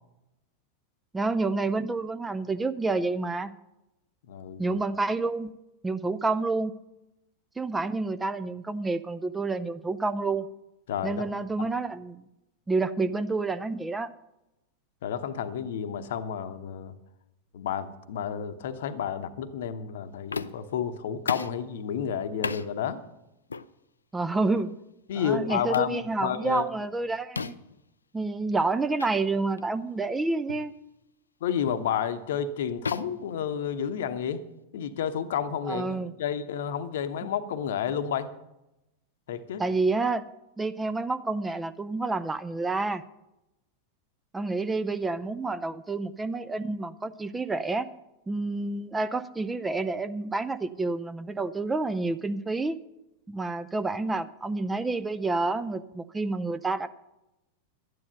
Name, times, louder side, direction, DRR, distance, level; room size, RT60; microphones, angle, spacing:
voice 1, 1.1-3.5 4.6-5.5 5.8-6.7 7.6-10.5 11.0-12.3 12.7-14.1 24.1-24.8 25.1-27.6 28.1-30.7 35.7-36.1 37.2-37.3 39.6-40.2 40.6-43.0 44.3-47.9 48.3-52.8 53.3-56.9, right 3 dB, 10° right, 11 dB, 0.5 m, -29 dB
voice 2, 4.3-4.7 10.9-11.2 11.6-11.7 15.0-16.9 17.5-23.0 25.1-26.7 31.4-34.4 34.7-38.3 39.3-39.6, left 8 dB, 55° left, 11 dB, 0.9 m, -31 dB
sound 1, 20.3-20.7 21.3-21.6 22.4-22.7 23.5-23.7 24.5-24.7 25.7-26.0 27.4-27.7 29.0-29.1 29.6-29.7 30.5-30.7 31.6-31.9 32.8-34.1, left 4 dB, 75° left, 0.4 m, -35 dB
12.0 x 9.7 x 6.6 m, 0.92 s
figure-of-eight pair, 90°, 0 cm